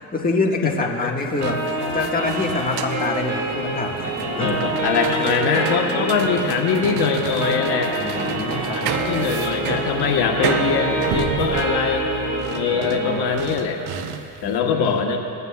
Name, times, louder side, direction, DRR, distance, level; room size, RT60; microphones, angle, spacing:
voice 1, 0.0-4.5 5.5-5.7 8.0-9.1 12.7-13.2 14.4-15.0, left 3 dB, 20° left, 0 dB, 1.6 m, -26 dB
sound 1, 1.2-14.5, right 7 dB, 65° right, 1.0 m, -31 dB
sound 2, 1.4-13.4, right 2 dB, 40° right, 2.3 m, -26 dB
voice 2, 4.4-7.9 8.7-12.1 12.5-13.8 14.4-15.2, left 6 dB, 65° left, 2 dB, 1.3 m, -22 dB
sound 3, 8.9-12.8, right 1 dB, 5° right, 0.4 m, -35 dB
20.5 x 15.0 x 2.3 m, 2.6 s
supercardioid pair, 85°, 42 cm